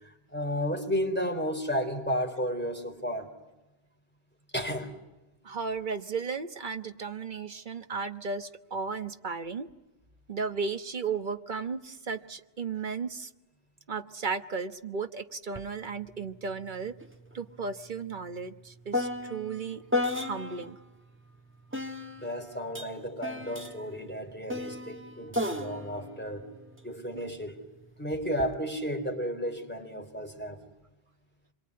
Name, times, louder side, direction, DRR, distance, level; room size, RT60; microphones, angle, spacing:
voice 1, 0.0-3.3 4.5-4.9 22.2-26.5 26.8-27.6 28.0-30.6, equal, 10° left, 2 dB, 3.8 m, -33 dB
voice 2, 5.4-9.7 10.3-13.3 13.9-16.9 17.3-19.8 20.2-20.8 27.1-27.2, right 5 dB, 50° right, 9 dB, 1.3 m, -35 dB
sound 1, 15.6-15.7 16.0-20.8 21.7-27.3 28.1-28.5, left 2 dB, 10° right, 1.3 m, -35 dB
26.0 x 22.5 x 9.6 m, 1.0 s
omnidirectional pair, 1.1 m